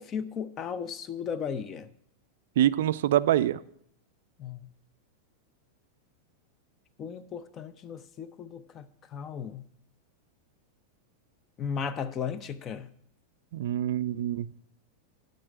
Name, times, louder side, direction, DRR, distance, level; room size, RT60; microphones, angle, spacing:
voice 1, 0.0-1.9 4.4-4.7 7.0-9.7 11.6-12.9, left 7 dB, 30° left, 0.6 m, -36 dB
voice 2, 2.6-3.6 13.5-14.5, right 12 dB, 55° right, 0.3 m, -25 dB
11.0 x 5.4 x 6.6 m
figure-of-eight pair, 90°, 0 cm